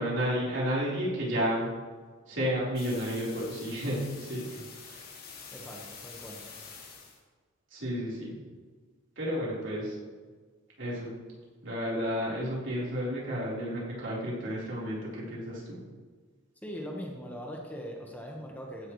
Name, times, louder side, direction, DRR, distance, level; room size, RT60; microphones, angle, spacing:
voice 1, 0.0-1.7 2.3-5.0 7.7-8.3 9.2-10.0 10.8-11.1 11.6-15.8, equal, 60° right, -6 dB, 4.2 m, -32 dB
sound 1, 2.7-7.2, left 5 dB, 50° left, 2.4 m, -47 dB
voice 2, 5.5-6.4 16.6-18.9, equal, 10° left, -1 dB, 1.4 m, -41 dB
15.5 x 11.0 x 3.3 m, 1.5 s
head